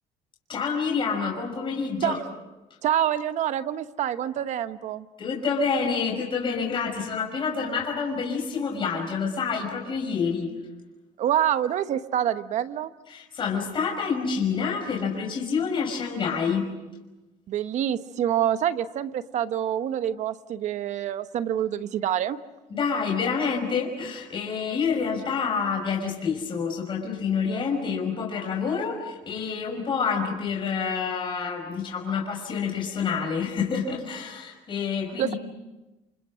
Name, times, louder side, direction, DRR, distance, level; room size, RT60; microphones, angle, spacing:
voice 1, 0.5-2.2 5.2-10.6 13.1-16.7 22.7-35.4, left 5 dB, 40° left, 0 dB, 5.4 m, -28 dB
voice 2, 2.8-5.1 11.2-12.9 17.5-22.4 35.2-35.3, right 10 dB, 60° right, 11 dB, 1.1 m, -26 dB
29.0 x 27.5 x 6.3 m, 1.1 s
cardioid pair, 135°, 14 cm